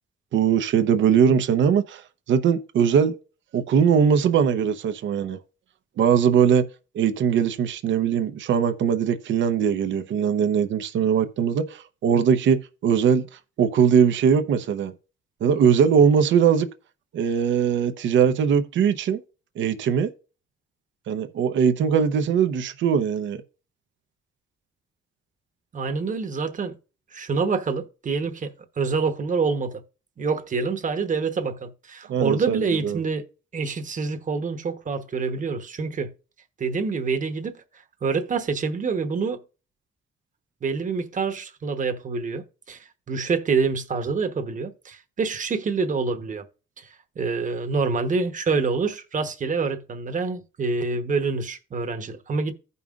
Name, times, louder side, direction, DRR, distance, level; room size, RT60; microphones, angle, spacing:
voice 1, 0.3-3.2 3.5-5.4 6.0-6.6 6.9-13.3 13.6-14.9 15.4-16.7 17.1-19.2 19.6-20.1 21.1-23.4 32.1-33.0, right 7 dB, 70° right, 0.8 m, -21 dB
voice 2, 25.7-26.7 27.1-29.8 30.2-33.2 33.5-36.1 36.6-37.6 38.0-39.4 40.6-46.5 46.8-46.9 47.2-52.5, right 4 dB, 40° right, 1.1 m, -26 dB
15.5 x 5.5 x 2.4 m
cardioid pair, 90°, 20 cm